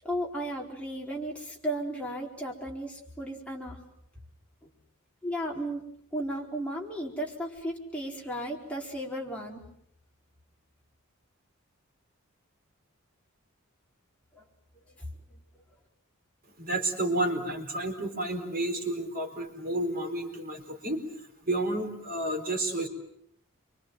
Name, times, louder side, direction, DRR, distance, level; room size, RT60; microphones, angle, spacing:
voice 1, 0.0-3.8 5.2-5.8 6.1-9.6 14.3-14.4, right 1 dB, 5° left, -2 dB, 4.3 m, -34 dB
voice 2, 16.6-21.0 21.5-22.9, right 1 dB, 40° right, 4 dB, 4.4 m, -31 dB
29.0 x 25.0 x 7.7 m, 0.72 s
head